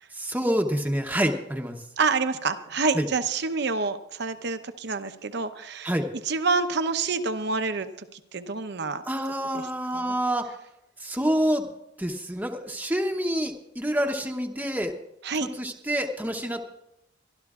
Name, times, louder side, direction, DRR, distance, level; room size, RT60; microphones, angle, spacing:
voice 1, 0.1-1.8 2.9-3.1 5.8-6.1 9.1-10.5 11.0-11.7 12.0-14.9 15.4-16.6, equal, 10° right, 3 dB, 0.8 m, -27 dB
voice 2, 2.0-5.9 6.3-9.0 9.5-9.6 9.9-10.1 15.2-15.5, right 4 dB, 60° right, 10 dB, 0.8 m, -27 dB
24.0 x 12.5 x 2.4 m, 0.85 s
head